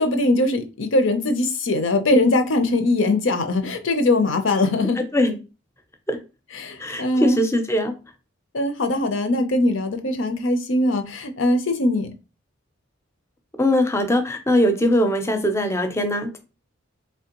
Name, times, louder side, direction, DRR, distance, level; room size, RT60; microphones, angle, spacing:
voice 1, 0.0-5.0 6.5-7.4 8.5-12.1, left 2 dB, 75° left, 8 dB, 0.6 m, -21 dB
voice 2, 6.8-7.9 13.6-16.4, left 1 dB, 15° left, 6 dB, 0.5 m, -21 dB
3.3 x 3.2 x 2.9 m, 0.31 s
head